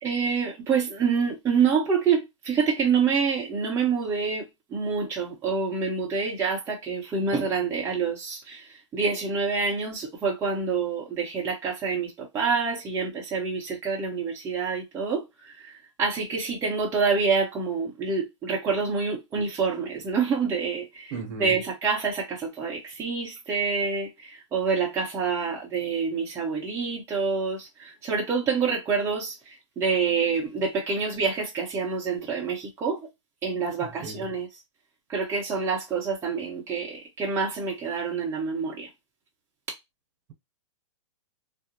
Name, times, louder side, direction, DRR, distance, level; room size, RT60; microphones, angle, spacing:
voice 1, 0.0-4.5 4.7-8.6 8.9-15.2 15.6-15.7 16.0-29.4 29.8-33.0 33.4-34.5 35.1-38.9, right 5 dB, 15° right, 0.8 m, -27 dB
voice 2, 21.1-21.6 33.8-34.3, right 4 dB, 45° right, 1.0 m, -36 dB
2.4 x 2.1 x 2.9 m
hypercardioid pair, 130°, 16 cm